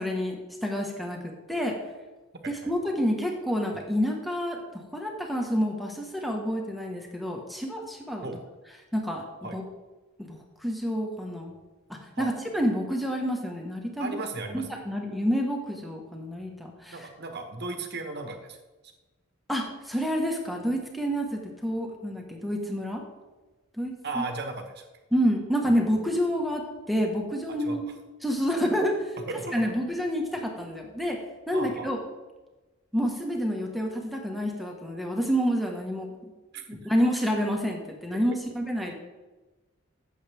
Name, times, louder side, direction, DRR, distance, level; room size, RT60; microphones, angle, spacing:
voice 1, 0.0-1.8 2.7-8.3 8.9-9.2 9.5-9.6 10.2-11.5 11.9-14.1 14.5-17.1 19.5-23.0 23.8-24.2 25.1-26.6 26.9-27.8 28.2-28.9 29.5-31.2 31.5-32.0 32.9-36.3 36.7-38.9, equal, ahead, 0 dB, 1.4 m, -28 dB
voice 2, 14.0-14.7 16.9-18.6 24.0-24.9 27.6-27.8 29.3-29.8 31.5-31.9 36.5-36.6 38.3-38.4, right 3 dB, 50° right, 5 dB, 1.3 m, -35 dB
15.0 x 7.4 x 3.5 m, 1.2 s
head